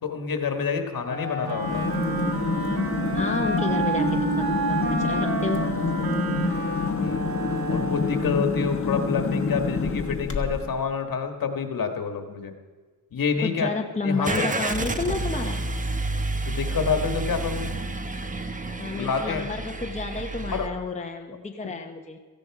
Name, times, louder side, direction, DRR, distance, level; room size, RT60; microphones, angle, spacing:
voice 1, 0.0-1.8 7.0-7.2 7.7-12.5 13.1-13.7 14.0-14.5 16.5-17.7 18.9-19.5 20.5-20.7, left 5 dB, 65° left, 6 dB, 1.6 m, -27 dB
Wind instrument woodwind instrument, 1.0-8.5, right 4 dB, 80° right, 1.9 m, -29 dB
sound 1, 1.6-10.8, left 4 dB, 35° left, 1.2 m, -27 dB
voice 2, 3.1-5.7 13.4-15.6 18.8-22.2, left 3 dB, 20° left, 3 dB, 0.8 m, -31 dB
Car / Engine starting, 14.2-20.7, right 2 dB, 20° right, 0.8 m, -30 dB
16.5 x 15.0 x 4.8 m, 1.4 s
wide cardioid pair, 175°, 37 cm